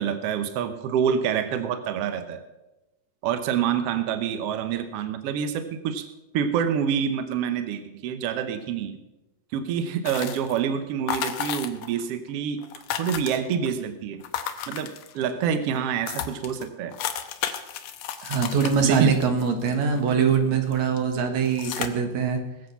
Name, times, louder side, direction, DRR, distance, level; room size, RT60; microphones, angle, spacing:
voice 1, 0.0-2.4 3.2-6.1 6.3-9.0 9.5-12.6 13.0-14.2 14.7-16.9 18.8-19.1, right 7 dB, 80° right, 9 dB, 1.4 m, -27 dB
sound 1, 10.1-10.7 11.1-12.0 12.3-12.4 12.6-13.7 14.2-15.3 15.8-15.9 16.1-20.4 20.7-21.0 21.5-21.9, left 9 dB, 70° left, 1.8 m, -33 dB
voice 2, 18.2-22.4, right 6 dB, 60° right, 5 dB, 2.5 m, -23 dB
20.0 x 7.8 x 5.7 m, 1.0 s
omnidirectional pair, 3.9 m